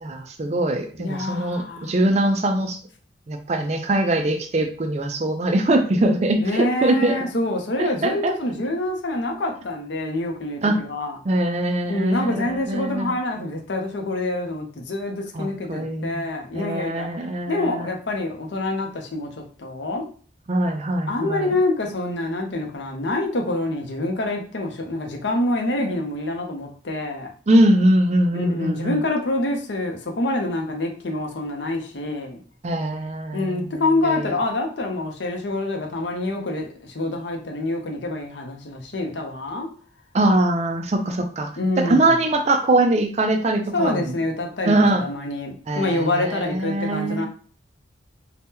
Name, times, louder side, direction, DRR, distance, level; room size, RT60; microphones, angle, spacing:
voice 1, 0.0-2.8 3.3-7.3 7.8-8.4 10.6-10.8 11.3-13.1 15.3-16.2 16.5-17.9 20.5-21.5 27.5-29.0 32.6-33.8 34.0-34.3 40.1-41.5 41.8-44.1 44.6-45.0 45.7-47.3, right 1 dB, 35° right, 6 dB, 0.4 m, -22 dB
voice 2, 1.0-1.9 6.4-11.2 11.9-17.1 17.5-20.1 21.1-27.3 28.3-32.4 33.3-39.7 41.6-42.2 43.7-47.3, left 2 dB, 65° left, 2 dB, 0.6 m, -26 dB
2.8 x 2.2 x 3.5 m, 0.43 s
head